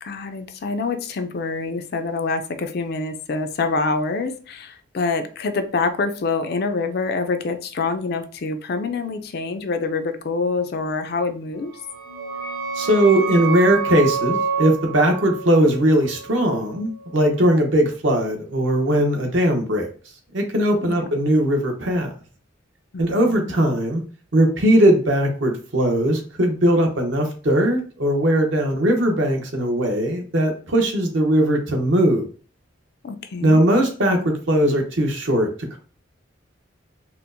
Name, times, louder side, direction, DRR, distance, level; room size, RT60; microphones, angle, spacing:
voice 1, 0.0-11.7 20.8-21.1 22.9-23.6 33.0-33.6, left 3 dB, 50° left, 0.4 m, -26 dB
sound 1, 11.7-17.1, right 5 dB, 15° right, 0.6 m, -28 dB
voice 2, 12.7-19.9 20.3-22.1 23.0-24.0 24.3-32.3 33.4-35.8, right 1 dB, 65° right, 0.8 m, -19 dB
4.3 x 2.0 x 2.6 m
head